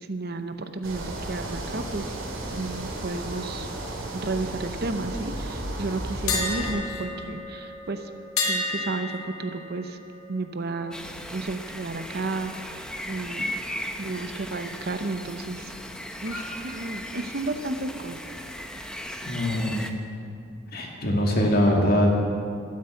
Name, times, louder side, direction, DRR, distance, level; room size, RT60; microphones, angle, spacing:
voice 1, 0.0-2.2 2.5-3.7 4.1-8.1 8.5-10.0 10.3-11.0 11.3-13.7 14.0-15.7 16.2-18.2, right 3 dB, 50° right, 8 dB, 0.7 m, -32 dB
sound 1, 0.8-6.7, right 1 dB, 70° right, 2.5 m, -34 dB
sound 2, 6.3-12.2 12.5-12.7 16.2-16.5, left 3 dB, 85° left, 2.0 m, -33 dB
sound 3, 10.9-19.9, equal, 5° left, 0.6 m, -37 dB
voice 2, 19.2-19.9 20.7-22.1, equal, 45° left, -1 dB, 2.3 m, -22 dB
12.0 x 10.5 x 7.8 m, 2.5 s
head